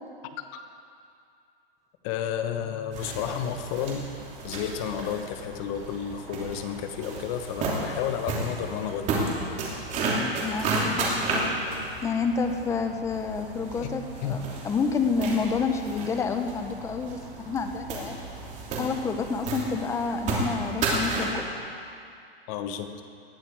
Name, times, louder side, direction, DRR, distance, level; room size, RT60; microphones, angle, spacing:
voice 1, 2.0-4.2 4.4-9.2 13.8-13.9 14.2-14.4 22.5-23.0, left 8 dB, 35° left, 7 dB, 1.1 m, -32 dB
sound 1, 2.9-21.4, right 2 dB, 25° right, 2.9 m, -32 dB
voice 2, 10.4-11.6 12.0-18.2 18.8-21.4, left 5 dB, 10° left, 6 dB, 0.7 m, -29 dB
19.5 x 12.5 x 4.7 m, 2.4 s
hypercardioid pair, 150°, 30 cm